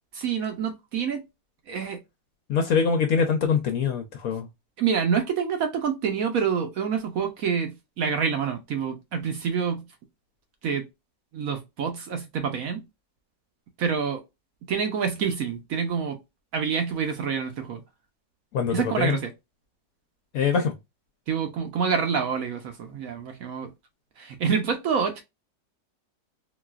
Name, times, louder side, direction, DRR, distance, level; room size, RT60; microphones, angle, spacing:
voice 1, 0.1-1.2 1.7-2.0 4.8-9.8 10.6-10.8 11.3-12.8 13.8-14.2 14.7-16.2 16.5-17.8 18.7-19.3 21.3-23.7 24.2-25.2, right 6 dB, 65° right, 0.9 m, -27 dB
voice 2, 2.5-4.5 18.5-19.2 20.3-20.7, left 6 dB, 70° left, 0.8 m, -24 dB
4.0 x 2.4 x 2.3 m
omnidirectional pair, 1.9 m